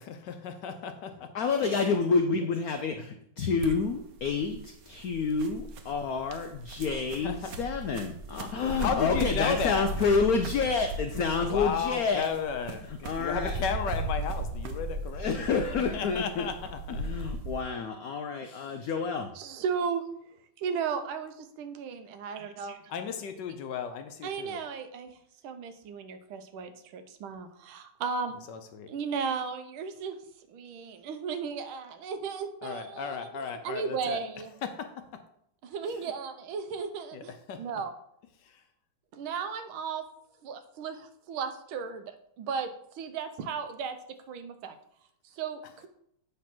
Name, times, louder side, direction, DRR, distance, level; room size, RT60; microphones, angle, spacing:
voice 1, 0.0-1.3 2.3-2.5 7.2-7.5 8.8-9.9 11.4-17.0 18.4-18.8 22.9-24.6 28.5-28.9 32.6-34.2 34.6-35.2 35.9-36.1 37.1-37.8 38.4-38.6, left 6 dB, 70° left, 8 dB, 1.1 m, -34 dB
voice 2, 1.3-12.3 13.0-13.6 15.2-16.5 16.9-19.3, left 5 dB, 90° left, 6 dB, 0.8 m, -29 dB
sound 1, 3.6-17.6, right 1 dB, 65° right, 0.9 m, -37 dB
voice 3, 19.3-20.1 20.6-22.8 24.2-25.1 25.4-28.3 28.9-30.2 30.5-33.3 33.6-34.5 35.6-37.3 37.6-37.9 39.1-40.1 40.4-44.0 44.3-44.8 45.3-45.9, right 6 dB, 85° right, 9 dB, 1.6 m, -35 dB
8.3 x 3.2 x 5.9 m, 0.72 s
omnidirectional pair, 2.2 m